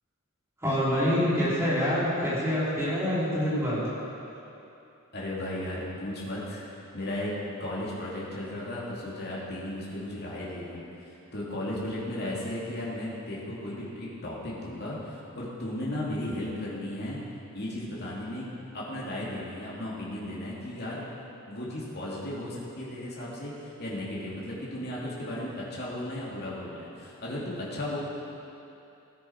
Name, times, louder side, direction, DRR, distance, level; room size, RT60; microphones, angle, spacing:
voice 1, 0.6-3.9, equal, 10° right, -10 dB, 3.7 m, -26 dB
voice 2, 5.1-6.6 6.9-7.3 7.6-17.2 17.5-18.5 18.7-21.0 21.5-28.0, left 1 dB, 50° left, -6 dB, 2.4 m, -35 dB
17.0 x 9.9 x 4.5 m, 2.9 s
head